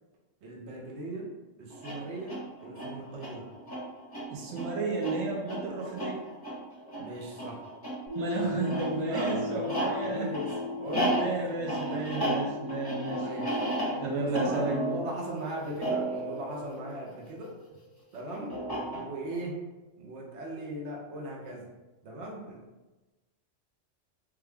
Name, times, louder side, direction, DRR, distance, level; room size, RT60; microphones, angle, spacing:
voice 1, 0.4-1.3 1.6-3.5 7.0-7.6 8.3-12.1 13.2-13.6 13.9-17.6 18.1-19.6 20.0-21.7 22.0-22.6, right 1 dB, 65° right, -2 dB, 1.0 m, -39 dB
sound 1, 1.7-17.5 18.5-19.4, right 1 dB, 20° left, 0.9 m, -34 dB
voice 2, 4.3-6.2 8.1-10.4 11.2-13.3 14.0-15.0, right 3 dB, 90° right, -1 dB, 1.0 m, -32 dB
sound 2, 8.1-16.9, left 5 dB, 5° left, 1.2 m, -39 dB
3.4 x 2.3 x 3.2 m, 1.1 s
omnidirectional pair, 1.3 m